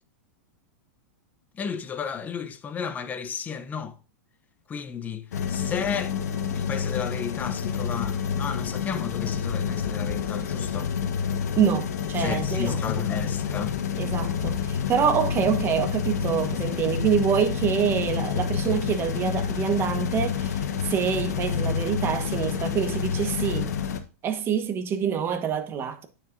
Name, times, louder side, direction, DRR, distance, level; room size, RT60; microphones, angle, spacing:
voice 1, 1.5-4.0 4.7-6.1 6.5-10.9 12.2-13.8, left 6 dB, 20° left, 0.8 m, -33 dB
sound 1, 5.3-24.0, left 7 dB, 85° left, 1.3 m, -28 dB
voice 2, 11.6-12.8 14.0-23.7 24.2-26.1, right 8 dB, 25° right, 1.1 m, -26 dB
9.4 x 7.1 x 2.6 m
hypercardioid pair, 140°, 9 cm